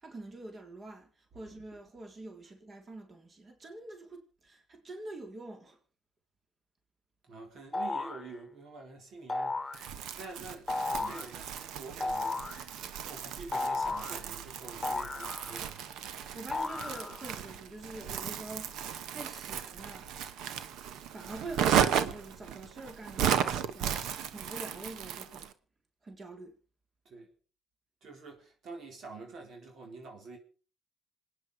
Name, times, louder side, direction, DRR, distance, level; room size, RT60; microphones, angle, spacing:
voice 1, 0.0-5.8 16.2-18.8 19.1-20.1 21.1-25.5 26.0-26.6, right 2 dB, 40° right, 3.7 m, -46 dB
voice 2, 7.3-12.5 13.0-15.9 27.1-27.3 28.0-30.4, right 3 dB, 65° right, 4.0 m, -47 dB
sound 1, 7.7-8.3 9.3-9.8 10.7-11.3 12.0-12.6 13.5-14.2 14.8-15.8 16.5-17.3, left 3 dB, 20° left, 1.5 m, -34 dB
Crumpling crinkling, 9.7-25.5, right 9 dB, 90° right, 1.1 m, -35 dB
27.0 x 9.8 x 4.8 m
cardioid pair, 90°, 0 cm